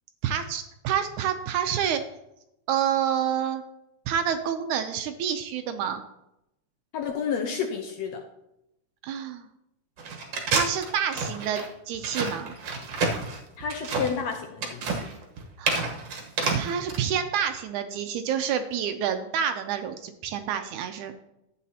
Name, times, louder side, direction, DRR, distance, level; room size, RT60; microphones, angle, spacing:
voice 1, 0.2-2.0 2.7-3.6 4.1-6.0 9.0-9.5 10.5-12.5 15.6-15.9 16.5-21.1, right 8 dB, 75° right, 8 dB, 1.9 m, -28 dB
voice 2, 6.9-8.2 13.6-15.1, left 6 dB, 70° left, 3 dB, 1.8 m, -30 dB
sound 1, 10.0-17.0, right 4 dB, 55° right, 1.9 m, -29 dB
12.0 x 8.4 x 2.8 m, 0.85 s
omnidirectional pair, 3.8 m